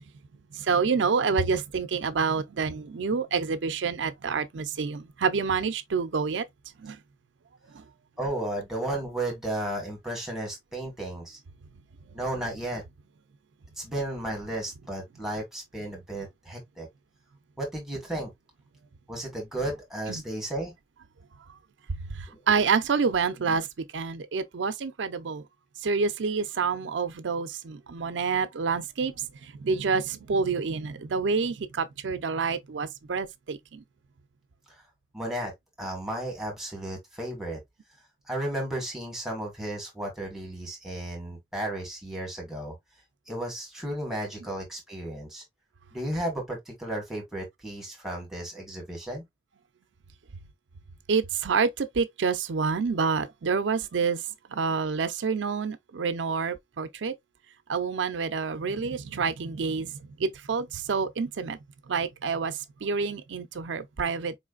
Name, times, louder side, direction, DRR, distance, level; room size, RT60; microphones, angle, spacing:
voice 1, 0.5-6.4 6.8-7.0 7.7-7.8 20.1-20.2 21.9-23.7 23.9-25.4 25.8-33.8 51.1-54.2 54.5-57.1 57.7-59.9 60.2-61.6 61.9-64.4, right 5 dB, 85° right, 0.5 m, -28 dB
voice 2, 8.2-11.4 12.1-12.8 13.8-16.9 17.6-18.3 19.1-20.7 22.3-22.4 34.7-34.8 35.1-35.5 35.8-37.6 38.3-42.7 43.3-45.4 45.9-49.2, right 1 dB, ahead, 1.4 m, -34 dB
4.4 x 3.2 x 2.3 m
head